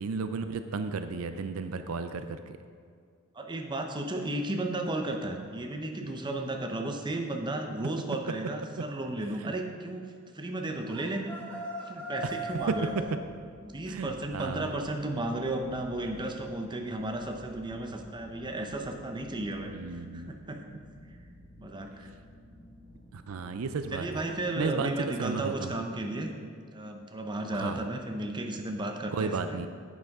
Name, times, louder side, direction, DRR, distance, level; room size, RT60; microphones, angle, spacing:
voice 1, 0.0-2.4 9.4-9.5 12.2-12.3 12.7-13.0 13.9-14.7 19.7-20.3 23.1-24.2 24.6-24.9 25.2-25.8 27.5-27.9 29.1-29.7, right 4 dB, 75° right, 9 dB, 0.5 m, -33 dB
voice 2, 3.3-11.3 11.8-12.9 13.6-20.8 21.6-22.1 23.9-26.3 26.7-29.6, right 2 dB, 20° right, 3 dB, 0.8 m, -34 dB
sound 1, 10.9-13.0, right 1 dB, 10° left, 1.6 m, -38 dB
sound 2, 12.5-24.7, left 1 dB, 85° left, 2.1 m, -52 dB
10.5 x 7.9 x 3.6 m, 2.2 s
head